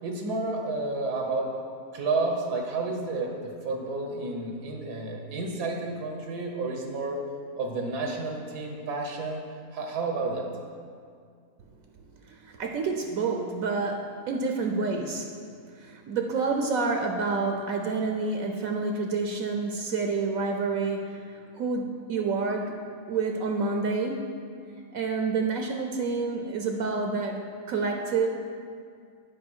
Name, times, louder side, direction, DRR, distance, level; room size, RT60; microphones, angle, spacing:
voice 1, 0.0-1.5 1.9-7.2 7.6-9.4 9.7-10.5, right 3 dB, 85° right, 2 dB, 1.5 m, -31 dB
voice 2, 12.3-15.3 15.7-22.8 23.1-24.3 24.9-28.3, right 4 dB, 70° right, 3 dB, 1.0 m, -28 dB
8.7 x 5.1 x 6.1 m, 2.2 s
omnidirectional pair, 1.6 m